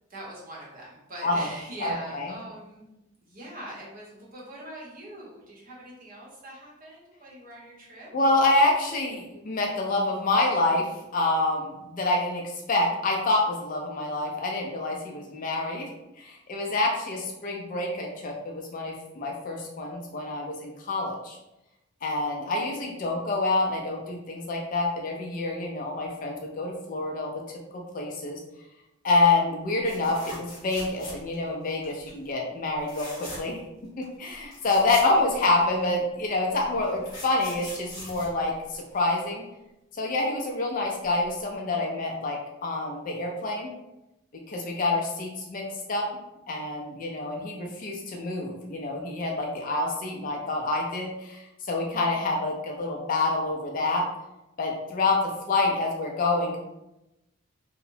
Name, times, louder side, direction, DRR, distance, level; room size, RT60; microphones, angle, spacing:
voice 1, 0.1-2.9 3.2-8.1, right 1 dB, 40° right, -4 dB, 0.8 m, -42 dB
voice 2, 1.8-2.3 8.1-10.9 11.1-12.4 12.7-15.9 16.2-21.4 22.0-27.4 27.9-28.4 29.0-33.6 34.0-39.4 39.9-43.7 44.5-46.1 46.5-54.0 54.6-56.6, left 2 dB, 40° left, 0 dB, 0.3 m, -27 dB
sound 1, 29.8-31.5 31.8-32.2 32.8-33.6 34.0-34.1 34.3-35.8 36.6-39.1 41.0-41.2 41.5-41.6, left 1 dB, 20° left, 0.8 m, -42 dB
2.8 x 2.0 x 2.6 m, 0.91 s
head